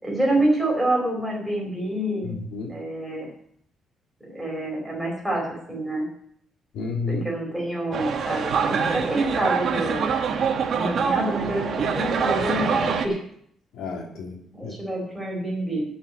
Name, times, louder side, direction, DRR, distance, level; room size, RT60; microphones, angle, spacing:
voice 1, 0.0-2.4 2.7-3.3 4.3-6.1 7.1-10.1 10.7-13.2 14.5-15.9, right 1 dB, 5° right, -1 dB, 4.5 m, -27 dB
voice 2, 2.2-2.8 6.7-7.3 13.7-14.7, left 3 dB, 75° left, 1 dB, 2.5 m, -31 dB
sound 1, 7.9-13.1, right 6 dB, 50° right, 1.6 m, -25 dB
9.7 x 7.2 x 9.3 m, 0.68 s
cardioid pair, 140°, 0 cm